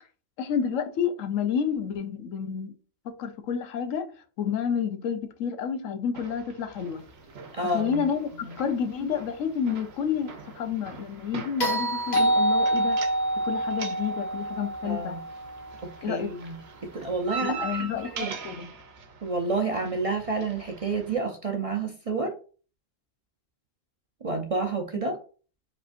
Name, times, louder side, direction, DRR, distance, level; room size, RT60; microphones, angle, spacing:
voice 1, 0.4-2.7 3.0-7.0 7.6-13.0 13.4-15.1 16.0-16.3 17.4-18.7, left 7 dB, 90° left, 1.1 m, -30 dB
sound 1, 6.1-21.1, right 5 dB, 60° right, 1.0 m, -42 dB
voice 2, 7.5-8.0 8.4-8.6 14.8-15.2 16.1-16.6 16.8-17.9 18.1-18.3 19.2-22.3 24.2-25.2, right 3 dB, 40° right, 0.5 m, -29 dB
sound 2, 11.6-15.9 18.1-18.2, right 1 dB, 35° left, 1.2 m, -26 dB
5.0 x 3.4 x 2.5 m
omnidirectional pair, 1.3 m